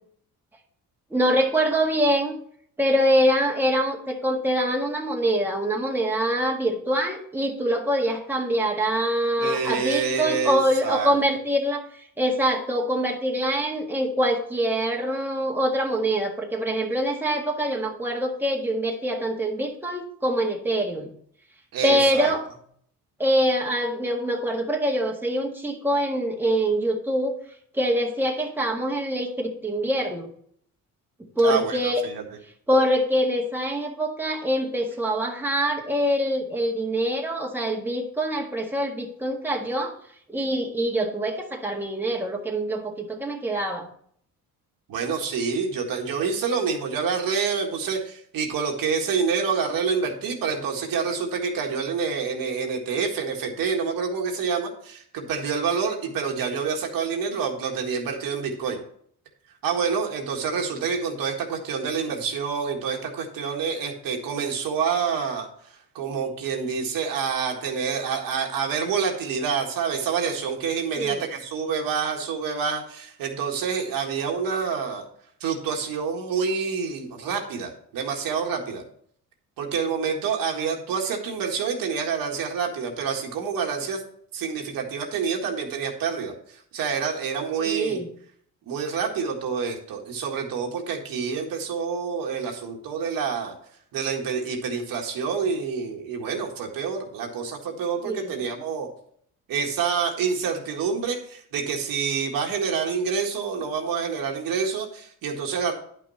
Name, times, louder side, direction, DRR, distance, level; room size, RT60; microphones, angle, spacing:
voice 1, 1.1-2.4 2.8-21.1 21.8-22.4 23.2-27.4 27.7-30.3 31.3-32.0 32.7-39.9 40.3-43.9 71.0-71.2 87.6-88.1 98.0-98.4, equal, 5° right, 0 dB, 1.7 m, -24 dB
voice 2, 9.4-11.2 21.7-22.3 31.4-32.2 44.9-58.8 59.6-65.5 65.7-75.0 75.4-78.8 79.6-84.0 84.3-88.0 88.7-93.6 93.9-98.9 99.5-105.7, right 6 dB, 75° right, 2 dB, 1.8 m, -27 dB
10.5 x 6.0 x 4.2 m, 0.63 s
cardioid pair, 100°, 35 cm